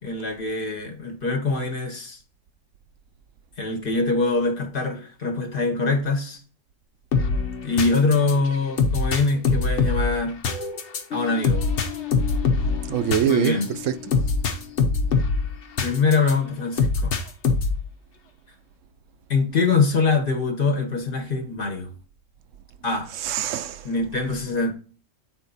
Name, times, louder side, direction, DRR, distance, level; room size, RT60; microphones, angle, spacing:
voice 1, 0.0-2.2 3.6-6.4 7.6-10.4 11.1-11.7 13.3-13.7 15.8-17.1 19.3-21.9 22.8-23.1 23.8-24.7, left 3 dB, 45° left, 1.2 m, -23 dB
sound 1, 7.1-16.3 16.8-17.9, left 4 dB, 65° left, 1.2 m, -24 dB
voice 2, 12.9-14.0 23.1-23.9 24.3-24.4, right 9 dB, 80° right, 0.9 m, -24 dB
8.2 x 4.3 x 4.0 m
omnidirectional pair, 1.3 m